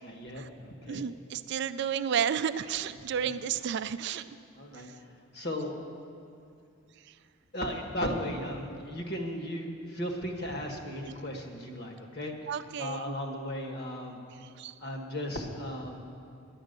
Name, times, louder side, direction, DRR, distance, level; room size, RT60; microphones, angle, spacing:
voice 1, 0.0-1.0 3.2-3.3 4.5-4.9 5.3-5.8 7.5-12.3 12.8-14.2 14.8-16.1, equal, 50° left, 2 dB, 1.4 m, -36 dB
voice 2, 0.9-4.3 12.5-13.1 14.6-14.7, right 8 dB, 50° right, 11 dB, 0.3 m, -32 dB
11.0 x 9.8 x 6.7 m, 2.5 s
head